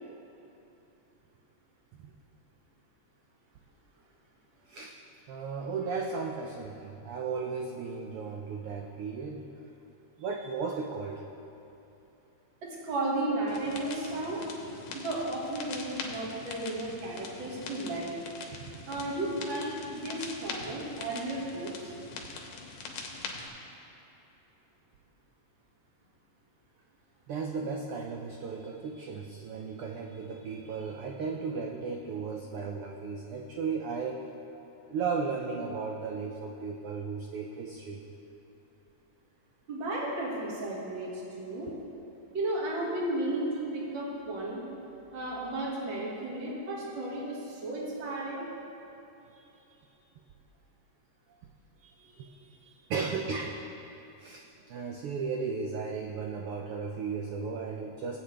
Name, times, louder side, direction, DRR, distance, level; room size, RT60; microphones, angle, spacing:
voice 1, 5.3-9.4 10.2-11.2 27.3-34.3 34.9-38.0 52.2-52.3 52.9-53.6 54.2-54.4 54.7-58.2, right 5 dB, 90° right, 1 dB, 1.2 m, -35 dB
voice 2, 12.6-14.4 14.9-18.1 18.9-21.9 39.7-41.7 42.3-44.6 45.1-48.4 51.8-52.3, right 1 dB, 45° right, -4 dB, 2.3 m, -34 dB
sound 1, 13.5-23.5, left 4 dB, 70° left, 2.2 m, -43 dB
17.5 x 8.4 x 3.3 m, 3.0 s
omnidirectional pair, 3.3 m